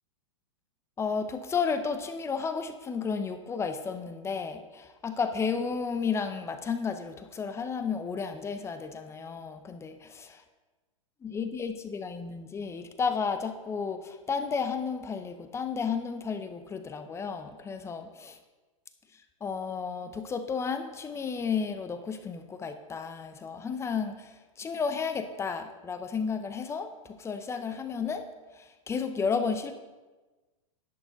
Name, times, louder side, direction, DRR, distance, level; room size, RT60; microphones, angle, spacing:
voice 1, 1.0-10.4 11.2-18.4 19.4-28.3 28.6-29.7, left 5 dB, 15° left, 9 dB, 0.7 m, -32 dB
11.0 x 8.0 x 3.9 m, 1.2 s
hypercardioid pair, 110°, 17 cm